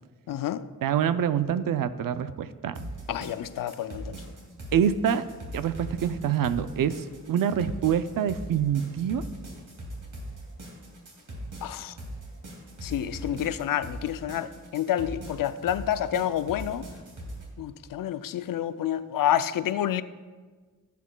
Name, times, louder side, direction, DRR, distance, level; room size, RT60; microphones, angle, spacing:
voice 1, 0.3-0.6 3.1-4.2 11.6-11.9 12.8-16.9 17.6-20.0, left 10 dB, 80° left, 13 dB, 0.5 m, -29 dB
voice 2, 0.8-2.9 4.7-5.2 5.5-9.2, right 8 dB, 85° right, 12 dB, 0.5 m, -26 dB
sound 1, 2.7-17.4, right 1 dB, 65° right, 2.3 m, -40 dB
16.0 x 8.3 x 2.2 m, 1.4 s
wide cardioid pair, 130°, 33 cm